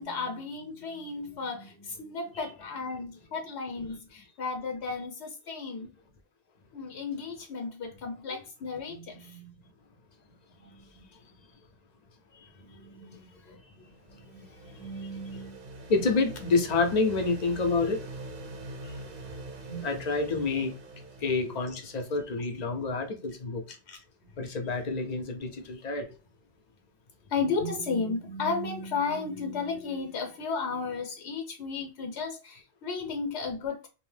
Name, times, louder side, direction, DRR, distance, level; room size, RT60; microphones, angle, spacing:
voice 1, 0.0-5.9 6.7-9.5 10.6-11.1 12.5-15.6 19.6-19.9 20.3-20.4 23.9-24.0 27.3-33.9, left 4 dB, 75° left, 0.9 m, -34 dB
sound 1, 13.7-22.5, right 2 dB, 55° right, 0.6 m, -44 dB
voice 2, 15.9-18.0 19.8-20.7 21.2-23.6 24.4-26.1, left 3 dB, 50° left, 0.6 m, -28 dB
2.7 x 2.0 x 3.2 m
omnidirectional pair, 1.1 m